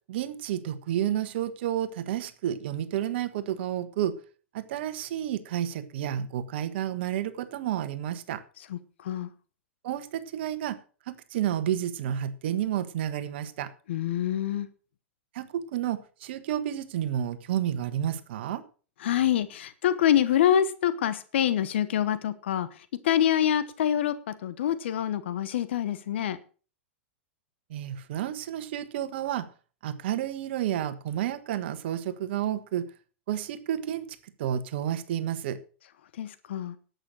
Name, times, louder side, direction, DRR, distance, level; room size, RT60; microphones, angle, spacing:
voice 1, 0.1-4.2 4.5-8.4 9.8-10.8 11.1-13.7 15.3-18.6 27.7-29.5 29.8-32.9 33.3-35.6, right 11 dB, 60° right, 1.4 m, -31 dB
voice 2, 13.9-14.7 19.0-22.7 23.0-24.1 24.4-26.4 36.2-36.7, left 10 dB, 65° left, 1.1 m, -25 dB
11.5 x 8.0 x 6.2 m
hypercardioid pair, 100°, 7 cm